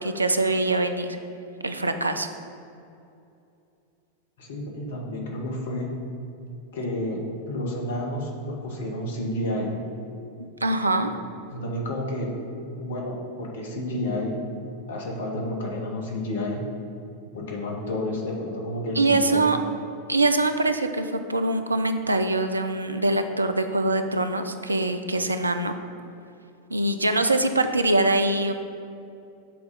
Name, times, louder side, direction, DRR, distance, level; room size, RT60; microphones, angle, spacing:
voice 1, 0.0-1.2 1.6-2.3 10.4-11.1 19.0-19.6 20.1-25.7 26.7-28.5, right 2 dB, 80° right, 8 dB, 0.4 m, -23 dB
voice 2, 4.4-5.9 6.7-7.2 7.5-9.7 11.5-12.3 12.7-14.4 14.9-16.6 17.3-19.5, left 1 dB, 60° left, 0 dB, 1.4 m, -30 dB
7.7 x 4.1 x 5.3 m, 2.6 s
figure-of-eight pair, 90°, 0 cm